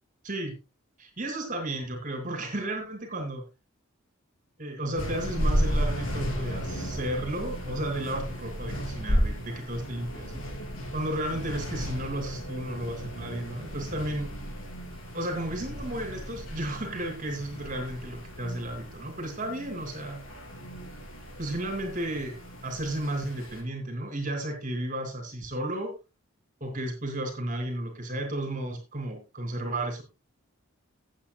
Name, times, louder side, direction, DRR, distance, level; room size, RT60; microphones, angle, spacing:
voice 1, 1.0-3.4 4.6-10.4 10.9-14.3 15.1-20.2 21.4-25.9 26.6-30.0, right 1 dB, 35° right, 5 dB, 2.8 m, -33 dB
sound 1, 4.9-23.6, equal, 85° left, 3.6 m, -34 dB
17.0 x 8.4 x 2.3 m, 0.27 s
head